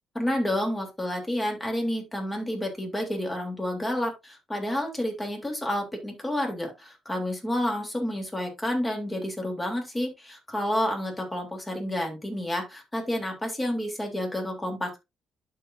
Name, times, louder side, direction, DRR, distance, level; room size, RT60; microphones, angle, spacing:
voice 1, 0.1-15.0, left 1 dB, 15° left, 2 dB, 3.3 m, -30 dB
12.0 x 4.8 x 2.7 m, 0.22 s
cardioid pair, 90°, 0 cm